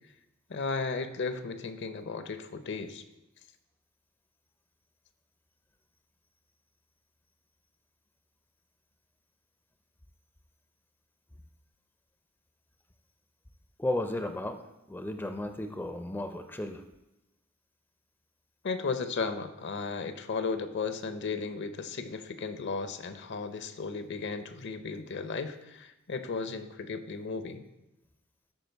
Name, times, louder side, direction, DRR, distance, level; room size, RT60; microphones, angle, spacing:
voice 1, 0.5-3.0 18.6-27.6, left 4 dB, 60° left, 10 dB, 0.7 m, -35 dB
voice 2, 13.8-14.6 14.9-16.8, left 1 dB, 10° left, 7 dB, 0.4 m, -34 dB
13.5 x 4.5 x 4.5 m, 0.96 s
head